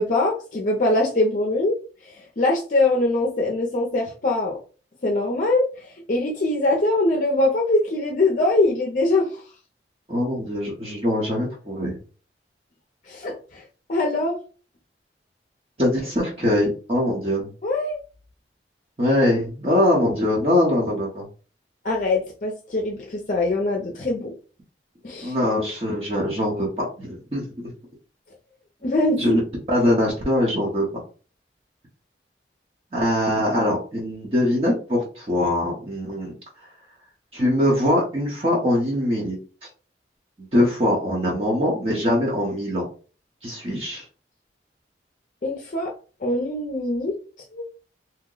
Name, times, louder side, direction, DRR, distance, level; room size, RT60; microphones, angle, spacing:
voice 1, 0.0-1.7 2.1-4.6 5.0-9.4 13.1-13.6 13.9-14.4 17.6-18.0 21.8-24.3 25.0-25.3 28.8-29.4 45.4-45.9 46.2-47.2 47.5-47.6, left 2 dB, 45° left, 0 dB, 0.5 m, -22 dB
voice 2, 10.1-12.0 15.8-17.5 19.0-21.2 25.2-27.7 29.2-29.4 29.7-30.9 32.9-36.3 37.3-39.4 40.4-42.8 43.4-44.0, left 1 dB, 35° right, -4 dB, 0.8 m, -22 dB
2.9 x 2.0 x 3.7 m, 0.37 s
head